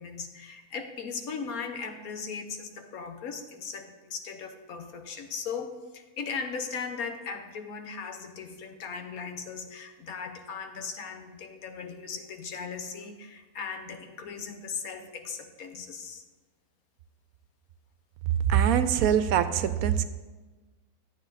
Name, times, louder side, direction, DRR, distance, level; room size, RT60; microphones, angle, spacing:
voice 1, 0.0-16.2, left 5 dB, 70° left, 6 dB, 1.3 m, -38 dB
voice 2, 18.5-20.0, right 9 dB, 75° right, 12 dB, 1.0 m, -23 dB
12.0 x 8.3 x 4.0 m, 1.2 s
omnidirectional pair, 1.6 m